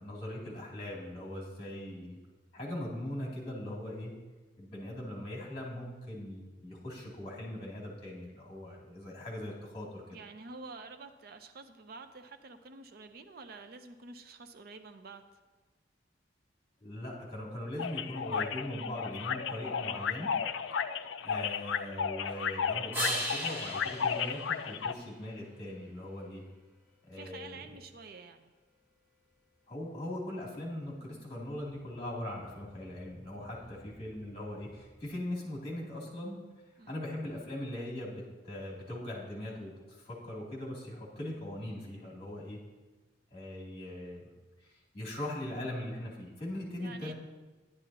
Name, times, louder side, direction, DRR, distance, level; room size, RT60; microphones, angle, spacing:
voice 1, 0.0-2.2 2.5-4.1 4.6-10.0 16.8-20.3 21.2-26.4 27.1-27.6 29.7-36.4 36.9-42.6 43.3-44.2 44.6-47.1, left 1 dB, 30° left, -4 dB, 2.8 m, -40 dB
voice 2, 10.1-15.2 27.1-28.5 33.5-33.8 36.8-37.0 46.8-47.1, right 3 dB, 55° right, 8 dB, 0.5 m, -48 dB
sound 1, 17.8-24.9, left 7 dB, 90° left, 0.4 m, -34 dB
sound 2, 22.9-25.5 31.2-35.2, equal, 10° right, 1.2 m, -41 dB
11.0 x 11.0 x 2.9 m, 1.2 s
head